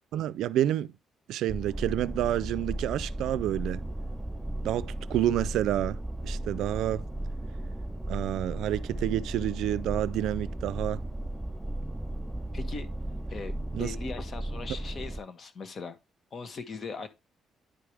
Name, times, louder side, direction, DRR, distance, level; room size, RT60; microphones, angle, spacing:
voice 1, 0.1-0.9 1.3-3.9 4.6-6.0 6.2-7.0 8.1-11.0 13.7-13.9, right 12 dB, 85° right, 0.3 m, -29 dB
sound 1, 1.5-15.2, right 1 dB, 5° right, 0.4 m, -35 dB
voice 2, 12.5-12.9 13.3-13.5 13.8-16.0 16.3-17.1, left 4 dB, 45° left, 1.4 m, -39 dB
10.0 x 4.8 x 3.3 m
cardioid pair, 90°, 0 cm